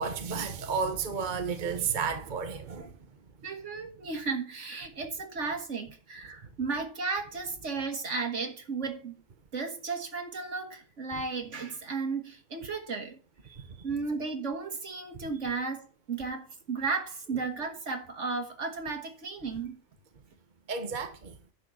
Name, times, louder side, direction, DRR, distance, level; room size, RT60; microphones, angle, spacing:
voice 1, 0.0-2.9 11.1-11.2 13.5-13.6 20.7-21.3, right 5 dB, 40° right, 1.2 m, -32 dB
voice 2, 3.4-9.2 9.5-13.2 13.8-19.8, right 4 dB, 70° right, 2.0 m, -34 dB
10.5 x 4.4 x 7.7 m
omnidirectional pair, 1.3 m